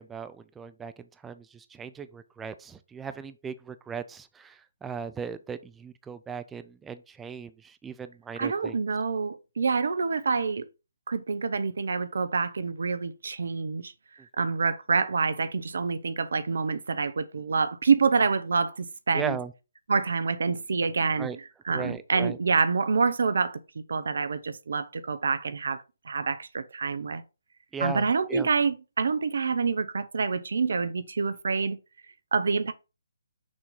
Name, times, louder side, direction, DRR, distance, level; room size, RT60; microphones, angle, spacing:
voice 1, 0.0-8.8 19.1-19.5 21.2-21.4 21.7-22.4 27.7-28.5, right 6 dB, 10° right, 0.4 m, -37 dB
voice 2, 8.4-10.6 11.1-13.9 14.4-19.4 19.9-21.3 21.6-23.6 23.9-27.2 27.8-31.8 32.3-32.7, right 4 dB, 65° right, 0.7 m, -27 dB
6.3 x 2.9 x 5.3 m
figure-of-eight pair, 135°, 0 cm